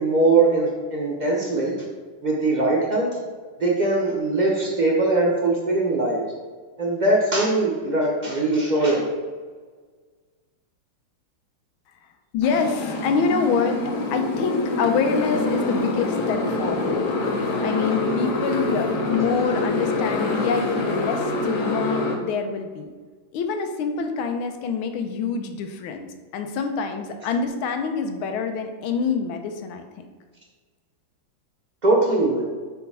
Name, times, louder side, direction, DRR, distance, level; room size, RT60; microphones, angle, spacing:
voice 1, 0.0-1.7 2.2-3.2 3.6-6.2 6.8-9.1 31.8-32.4, right 2 dB, 40° right, -2 dB, 0.6 m, -21 dB
voice 2, 12.3-13.8 14.1-17.0 17.6-22.9 23.3-26.1 26.3-29.9, left 5 dB, 80° left, 6 dB, 1.5 m, -26 dB
Motorcycle, 12.4-22.2, left 2 dB, 60° left, 1.3 m, -25 dB
5.0 x 4.5 x 5.5 m, 1.5 s
omnidirectional pair, 2.3 m